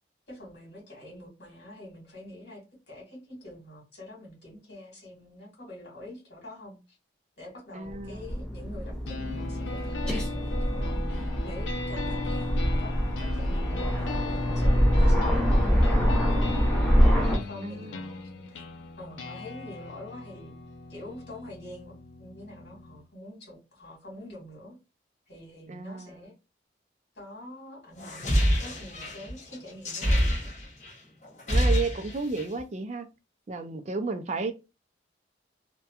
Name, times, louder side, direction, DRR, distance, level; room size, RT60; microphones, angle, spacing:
voice 1, 0.3-7.0 7.4-18.6 19.0-20.5 20.9-24.8 25.3-26.3 27.1-30.5, left 1 dB, 60° left, 1.5 m, -46 dB
voice 2, 7.7-8.5 17.6-18.0 25.7-26.3 31.5-33.1 33.5-34.5, right 3 dB, 40° right, 0.3 m, -33 dB
Aircraft, 7.8-17.4, equal, 5° left, 0.6 m, -25 dB
sound 1, 9.1-23.0, left 3 dB, 85° left, 0.4 m, -38 dB
sound 2, 28.0-30.9 31.2-32.6, equal, 40° left, 0.7 m, -26 dB
2.7 x 2.2 x 2.3 m
head